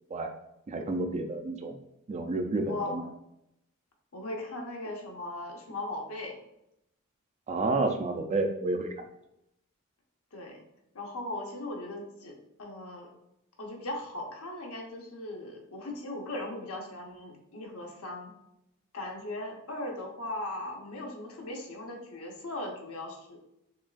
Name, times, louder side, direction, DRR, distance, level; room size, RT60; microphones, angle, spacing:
voice 1, 0.7-1.8 2.1-3.0 7.5-8.9, right 2 dB, 30° right, 5 dB, 0.3 m, -30 dB
voice 2, 4.1-6.3 10.3-10.6 10.9-13.1 13.6-18.3 18.9-23.4, left 1 dB, 70° left, 0 dB, 0.9 m, -38 dB
6.1 x 2.3 x 2.4 m, 0.82 s
head